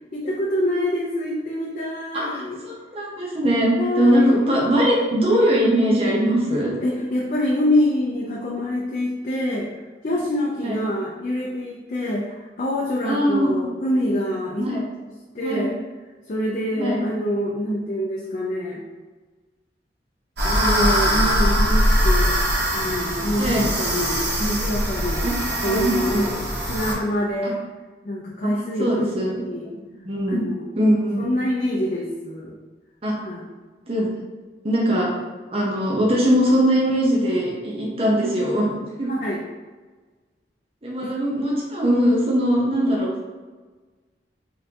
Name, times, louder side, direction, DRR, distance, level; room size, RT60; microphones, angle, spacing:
voice 1, 0.1-2.6 3.8-4.4 6.8-9.7 10.0-14.7 15.3-15.7 16.3-18.8 20.4-22.3 22.7-26.4 26.7-27.6 28.0-29.0 29.5-29.7 30.3-30.7 31.2-32.6 33.2-33.4 39.1-39.4 41.0-41.1, left 1 dB, 45° left, -5 dB, 0.6 m, -25 dB
voice 2, 2.1-6.7 10.6-10.8 13.1-13.7 14.6-14.8 15.4-15.7 16.8-17.0 23.4-23.7 25.2-25.3 25.7-26.2 27.4-27.5 28.4-28.5 28.8-29.4 29.8-30.4 30.7-31.3 33.0-33.1 33.9-34.1 34.6-35.1 35.5-38.7 39.0-39.1 40.8-43.1, equal, 35° right, -4 dB, 0.9 m, -21 dB
sound 1, 20.4-26.9, equal, 75° right, 1.2 m, -22 dB
4.3 x 3.7 x 2.9 m, 1.3 s
head